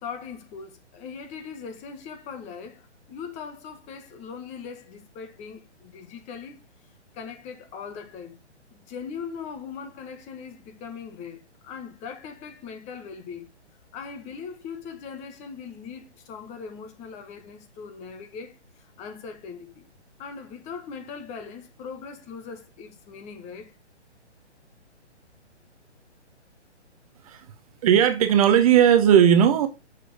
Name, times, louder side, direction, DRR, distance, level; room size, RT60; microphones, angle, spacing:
voice 1, 0.0-6.6 7.1-8.4 8.7-13.5 13.9-19.8 20.2-23.7, left 6 dB, 20° left, 1.5 m, -40 dB
voice 2, 27.8-29.7, right 9 dB, 30° right, 0.9 m, -17 dB
10.0 x 6.7 x 3.5 m
figure-of-eight pair, 135°, 35 cm